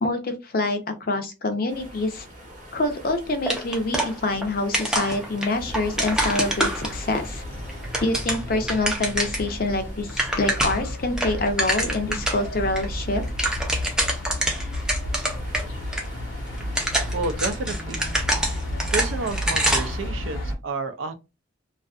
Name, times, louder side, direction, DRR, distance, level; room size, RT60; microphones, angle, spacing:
voice 1, 0.0-2.3 2.7-7.4 8.0-13.2, left 2 dB, 45° left, 0.5 m, -26 dB
sound 1, 1.7-20.1, equal, 40° right, 0.8 m, -44 dB
sound 2, 3.5-4.5 4.7-7.2 7.7-9.5 9.8-9.9 10.1-10.9 11.2-12.4 12.8-12.9 13.2-15.6 15.9-16.0 16.6-20.0, right 1 dB, 5° right, 0.4 m, -26 dB
sound 3, 5.6-20.5, left 1 dB, 80° left, 0.9 m, -32 dB
voice 2, 17.1-18.1 18.9-21.1, right 3 dB, 75° right, 0.4 m, -30 dB
2.6 x 2.4 x 2.3 m
head